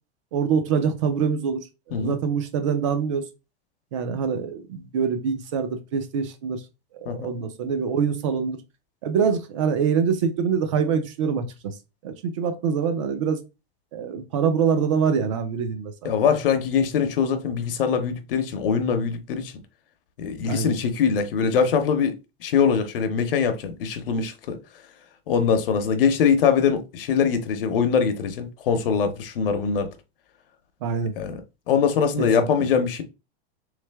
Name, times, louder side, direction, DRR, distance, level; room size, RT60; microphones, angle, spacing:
voice 1, 0.3-1.6 1.9-3.2 3.9-6.6 6.9-8.6 9.0-11.7 12.0-13.4 13.9-16.1 20.5-20.7 30.8-31.1 32.2-32.5, right 6 dB, 30° right, 0.5 m, -25 dB
voice 2, 16.0-19.5 20.2-22.1 22.4-24.6 25.3-29.9 31.2-31.4 31.7-33.0, left 6 dB, 60° left, 0.7 m, -22 dB
3.5 x 3.3 x 3.3 m
supercardioid pair, 175°, 32 cm